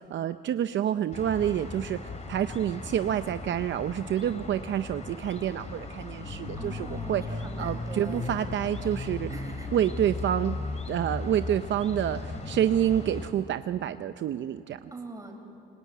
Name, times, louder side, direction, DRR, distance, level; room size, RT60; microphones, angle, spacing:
voice 1, 0.0-9.3 9.7-10.6 10.9-14.9, right 10 dB, 65° right, 10 dB, 0.7 m, -28 dB
sound 1, 1.1-13.3, left 3 dB, 35° left, 3.1 m, -37 dB
voice 2, 6.6-8.4 9.3-9.7 14.9-15.4, right 2 dB, 15° right, 3 dB, 5.0 m, -42 dB
26.5 x 24.0 x 9.4 m, 2.8 s
cardioid pair, 110°, 21 cm